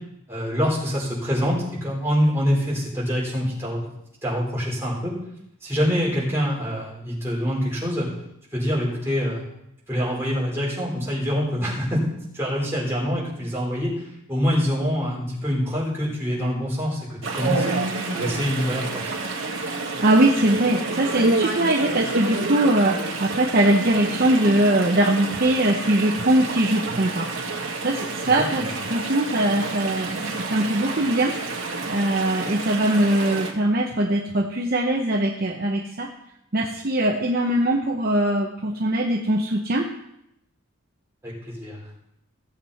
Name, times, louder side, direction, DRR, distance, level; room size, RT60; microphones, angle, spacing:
voice 1, 0.3-3.8 4.2-5.1 5.6-8.1 8.5-9.4 9.9-12.0 12.3-17.7 18.1-19.1 28.2-28.4 41.2-41.8, equal, 10° right, -6 dB, 4.3 m, -25 dB
Chatter / Stream, 17.2-33.5, right 3 dB, 75° right, 2.2 m, -29 dB
voice 2, 20.0-27.3 27.8-31.4 31.9-36.1 36.5-39.9, right 1 dB, 45° right, 1 dB, 0.8 m, -21 dB
16.5 x 7.5 x 4.2 m, 0.79 s
head